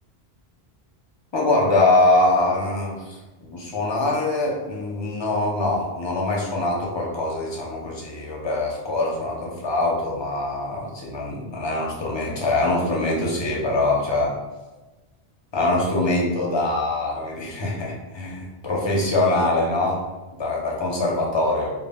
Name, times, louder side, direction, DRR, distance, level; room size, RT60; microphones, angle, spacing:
voice 1, 1.3-14.3 15.5-20.0 20.4-21.7, left 2 dB, 40° left, -2 dB, 0.4 m, -23 dB
2.1 x 2.1 x 3.4 m, 1.2 s
omnidirectional pair, 1.0 m